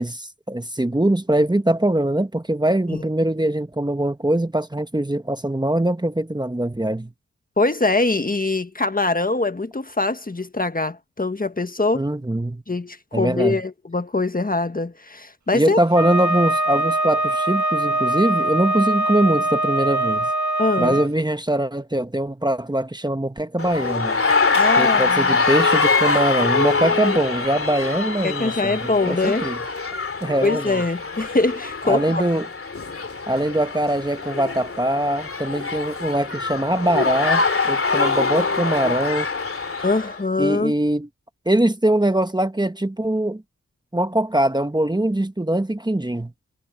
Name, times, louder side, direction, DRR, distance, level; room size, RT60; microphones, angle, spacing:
voice 1, 0.0-7.1 11.9-12.6 13.1-13.6 15.5-20.3 20.8-24.2 24.8-29.6 30.2-30.8 31.9-32.5 33.3-39.3 40.4-41.1 41.4-43.4 43.9-46.3, right 1 dB, 15° right, 1.4 m, -22 dB
voice 2, 7.6-12.1 12.7-15.8 20.6-21.0 24.5-25.4 28.2-29.4 30.4-32.2 39.8-40.7, left 3 dB, 25° left, 1.5 m, -23 dB
Wind instrument woodwind instrument, 15.9-21.1, right 1 dB, 65° right, 1.8 m, -22 dB
sound 1, 23.6-40.2, left 4 dB, 45° left, 2.8 m, -23 dB
cardioid pair, 45°, 31 cm